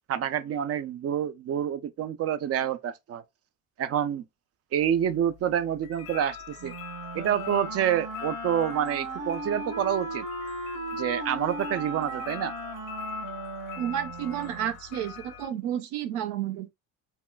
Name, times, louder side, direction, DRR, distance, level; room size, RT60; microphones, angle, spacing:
voice 1, 0.1-3.2 3.8-4.2 4.7-6.7 7.1-10.3 10.9-12.5, right 9 dB, 40° right, 0.5 m, -28 dB
sound 1, 4.8-15.5, left 8 dB, 75° left, 0.9 m, -43 dB
Wind instrument woodwind instrument, 6.6-14.8, right 2 dB, 60° right, 1.6 m, -37 dB
voice 2, 13.8-16.7, right 10 dB, 75° right, 0.7 m, -31 dB
3.5 x 2.2 x 2.3 m
hypercardioid pair, 70°, 38 cm